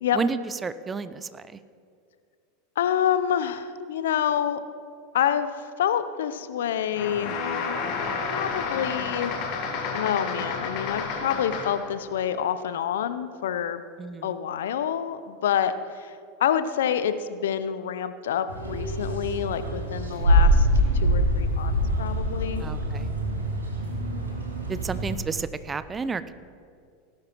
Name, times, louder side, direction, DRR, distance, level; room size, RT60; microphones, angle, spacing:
voice 1, 0.1-1.4 14.0-14.3 22.6-23.1 24.7-26.3, right 4 dB, 20° right, 14 dB, 0.5 m, -31 dB
voice 2, 2.8-4.6 5.1-7.4 8.3-9.3 9.9-13.8 14.2-20.7 20.9-22.6, left 9 dB, 70° left, 12 dB, 0.6 m, -27 dB
sound 1, 6.9-11.9, left 5 dB, 55° left, 1.8 m, -30 dB
sound 2, 18.5-25.2, equal, 85° right, 1.9 m, -24 dB
18.0 x 10.5 x 3.0 m, 2.3 s
hypercardioid pair, 85°, 0 cm